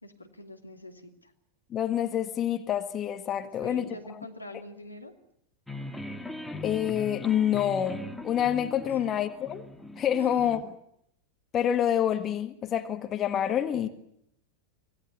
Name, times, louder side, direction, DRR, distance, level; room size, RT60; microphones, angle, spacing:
voice 1, 0.0-1.3 3.6-5.1 8.9-9.1 10.2-10.5, left 1 dB, 85° left, 2.6 m, -45 dB
voice 2, 1.7-3.9 6.6-9.7 10.0-10.7 11.5-13.9, left 10 dB, 30° left, 1.7 m, -27 dB
sound 1, 5.7-10.6, left 1 dB, 5° left, 2.0 m, -40 dB
25.0 x 18.0 x 9.9 m
figure-of-eight pair, 90°, 0 cm